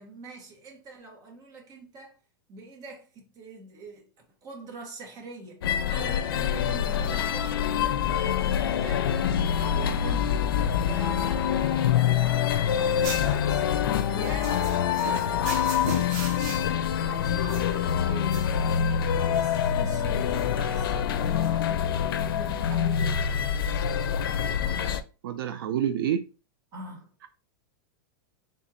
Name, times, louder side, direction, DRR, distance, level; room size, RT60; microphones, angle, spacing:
voice 1, 0.0-2.2 2.5-4.1 4.4-9.1 9.6-10.5 10.8-13.6 14.1-14.7 15.0-18.5 19.2-23.5 26.7-27.1, right 3 dB, 30° right, 1.2 m, -44 dB
sound 1, 5.6-25.0, left 8 dB, 90° left, 0.5 m, -25 dB
sound 2, 13.0-21.5, right 4 dB, 50° right, 1.1 m, -41 dB
voice 2, 25.2-26.2, right 9 dB, 80° right, 0.5 m, -27 dB
3.6 x 2.6 x 4.0 m
supercardioid pair, 155°, 12 cm